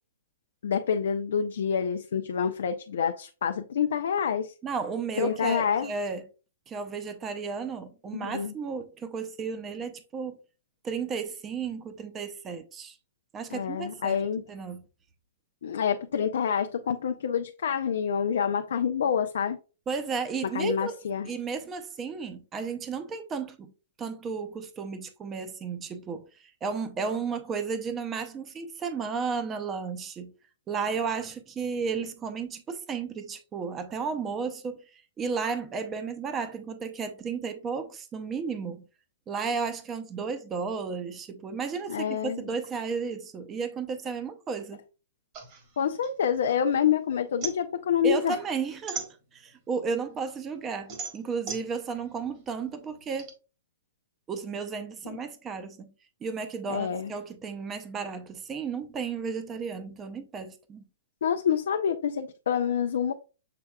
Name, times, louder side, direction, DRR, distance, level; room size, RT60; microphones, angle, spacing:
voice 1, 0.6-4.5 5.2-5.9 8.1-8.5 13.5-14.4 15.6-19.6 20.5-21.3 41.9-42.4 45.8-48.4 55.1-55.2 56.7-57.1 61.2-63.1, left 7 dB, 75° left, 0.4 m, -27 dB
voice 2, 4.6-6.2 6.7-10.4 10.8-13.0 13.3-14.2 14.5-14.8 19.9-21.0 21.3-23.7 24.0-30.3 30.7-38.8 39.3-44.8 48.0-49.0 49.3-53.3 54.3-55.9 56.2-60.8, right 5 dB, 20° right, 0.7 m, -33 dB
sound 1, 45.3-46.8 47.1-49.7 50.1-53.3, right 5 dB, 35° right, 1.5 m, -39 dB
6.7 x 3.4 x 2.3 m
hypercardioid pair, 135°, 0 cm